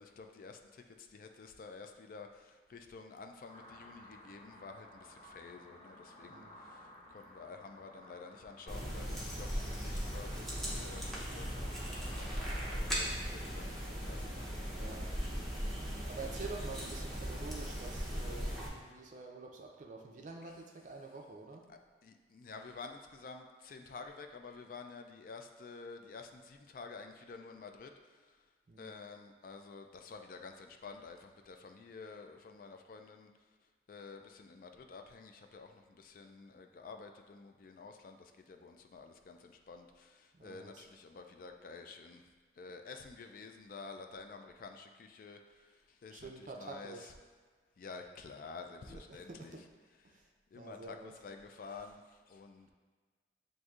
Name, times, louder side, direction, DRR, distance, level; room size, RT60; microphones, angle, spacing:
voice 1, 0.0-11.1 11.3-11.7 12.7-14.5 14.8-15.1 20.4-20.5 21.7-28.4 28.8-33.3 33.9-42.2 42.6-47.1 47.8-49.6 50.1-50.2 50.5-52.7, left 4 dB, 50° left, 5 dB, 0.3 m, -50 dB
sound 1, 3.5-12.9, left 1 dB, 35° left, 0.9 m, -55 dB
sound 2, 8.7-18.7, equal, ahead, 0.7 m, -38 dB
voice 2, 14.7-15.1 16.1-21.7 28.7-28.9 40.3-40.8 46.1-47.1 48.9-49.6 50.0-50.3 50.5-51.1, right 3 dB, 45° right, 1 dB, 0.4 m, -48 dB
7.6 x 2.6 x 2.4 m, 1.5 s
head